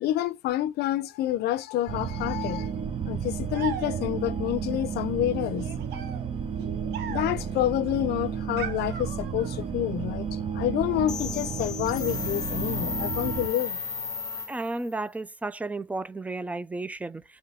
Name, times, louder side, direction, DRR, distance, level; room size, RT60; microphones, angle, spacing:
voice 1, 0.0-2.7 3.1-5.7 7.0-13.8, left 13 dB, 75° left, 0.5 m, -28 dB
sound 1, 1.9-13.5, right 7 dB, 35° right, 0.7 m, -32 dB
sound 2, 3.5-4.4 5.5-7.5 8.6-9.7, right 9 dB, 75° right, 0.9 m, -39 dB
sound 3, 11.1-14.9, left 5 dB, 20° left, 0.8 m, -34 dB
voice 2, 14.5-17.2, right 2 dB, 10° right, 0.3 m, -33 dB
3.6 x 2.8 x 3.3 m
cardioid pair, 110°, 17 cm